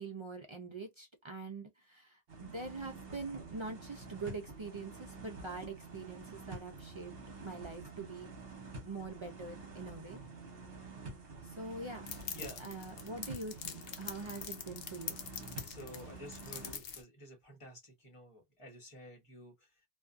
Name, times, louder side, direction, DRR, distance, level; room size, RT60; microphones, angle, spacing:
voice 1, 0.0-7.2 7.4-8.3 8.8-10.2 11.4-12.1 12.6-15.2, right 3 dB, 50° right, 0.3 m, -44 dB
sound 1, 2.3-16.8, right 3 dB, 65° right, 1.1 m, -49 dB
sound 2, 12.1-17.0, left 8 dB, 70° left, 0.8 m, -45 dB
voice 2, 12.3-12.6 15.6-19.8, equal, 30° left, 1.0 m, -51 dB
2.5 x 2.2 x 2.4 m
omnidirectional pair, 1.1 m